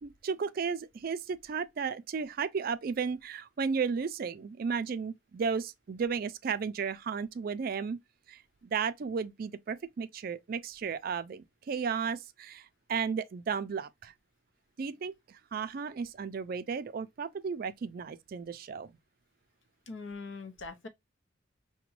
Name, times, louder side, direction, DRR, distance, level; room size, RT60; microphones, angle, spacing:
voice 1, 0.0-8.0 8.3-14.1 14.8-18.9, right 6 dB, 50° right, 0.3 m, -34 dB
voice 2, 19.9-20.9, left 4 dB, 75° left, 0.7 m, -42 dB
5.8 x 2.2 x 3.0 m
head